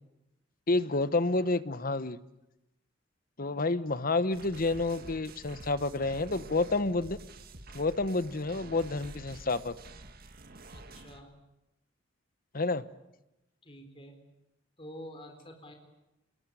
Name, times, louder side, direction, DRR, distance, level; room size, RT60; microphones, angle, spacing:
voice 1, 0.7-2.2 3.4-7.2 7.7-9.7 12.5-12.8, left 3 dB, 45° left, 14 dB, 1.0 m, -29 dB
sound 1, 4.3-11.2, right 2 dB, 50° right, 1.9 m, -48 dB
voice 2, 10.7-11.3 13.6-14.2 14.8-15.7, equal, 25° left, 5 dB, 4.1 m, -47 dB
27.0 x 22.0 x 9.2 m, 0.94 s
head